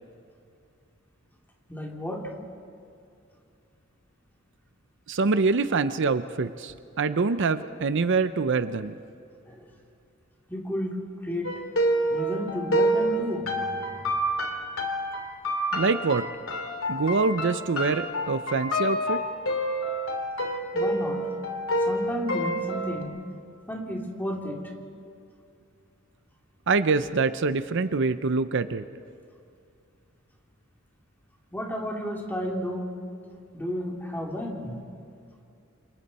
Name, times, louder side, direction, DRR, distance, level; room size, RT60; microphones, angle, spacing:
voice 1, 1.7-2.3 9.5-9.7 10.5-11.6 12.1-13.5 20.7-21.3 21.9-23.2 23.7-24.7 31.5-32.9 33.5-34.8, equal, 10° left, -1 dB, 3.0 m, -32 dB
voice 2, 5.1-8.9 15.7-16.3 16.9-19.2 26.7-28.8, right 4 dB, 60° right, 12 dB, 0.6 m, -25 dB
sound 1, 11.4-23.0, equal, 75° left, 3.0 m, -28 dB
28.5 x 27.0 x 4.2 m, 2.5 s
head